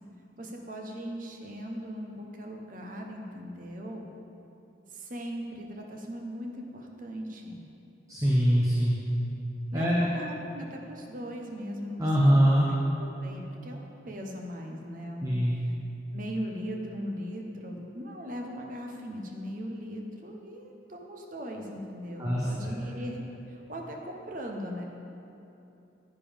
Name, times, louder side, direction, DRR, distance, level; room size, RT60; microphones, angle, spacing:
voice 1, 0.4-4.1 4.9-7.6 9.7-12.4 13.0-15.7 16.1-24.9, equal, 45° right, 1 dB, 1.0 m, -39 dB
voice 2, 8.1-9.0 9.7-10.1 12.0-12.7 15.2-15.6 22.2-22.7, equal, 15° right, -5 dB, 0.8 m, -23 dB
10.0 x 9.3 x 3.5 m, 2.9 s
head